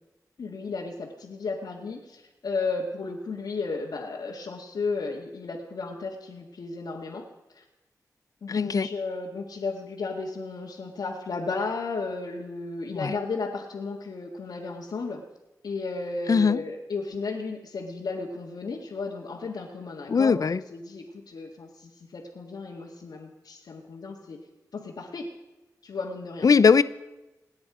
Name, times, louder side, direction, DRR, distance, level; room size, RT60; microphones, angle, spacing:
voice 1, 0.4-7.2 7.5-7.6 8.4-15.2 15.6-24.4 24.7-25.3 25.8-26.5, left 4 dB, 85° left, -4 dB, 1.9 m, -34 dB
voice 2, 8.5-8.9 12.9-13.1 16.3-16.6 20.1-20.6 26.4-26.8, left 5 dB, 60° left, 16 dB, 0.6 m, -20 dB
28.0 x 9.6 x 5.0 m, 1.0 s
wide cardioid pair, 70°, 7 cm